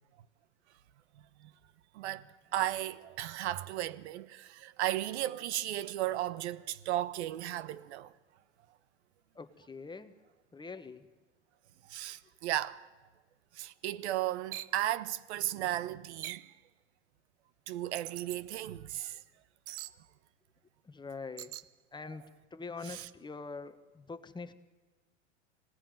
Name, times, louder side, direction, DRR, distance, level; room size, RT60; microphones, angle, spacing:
voice 1, 1.9-8.1 11.9-12.8 13.5-16.4 17.7-19.2 22.8-23.1, right 13 dB, 65° right, 1.3 m, -35 dB
voice 2, 9.3-10.1 10.5-11.1 20.8-21.5 21.9-22.2 22.5-24.5, left 4 dB, 10° left, 1.4 m, -44 dB
sound 1, 14.5-14.8 16.2-16.5 17.9-18.4 19.7-20.0 21.4-21.7, right 16 dB, 40° right, 0.8 m, -42 dB
26.5 x 18.5 x 9.1 m
hypercardioid pair, 100°, 36 cm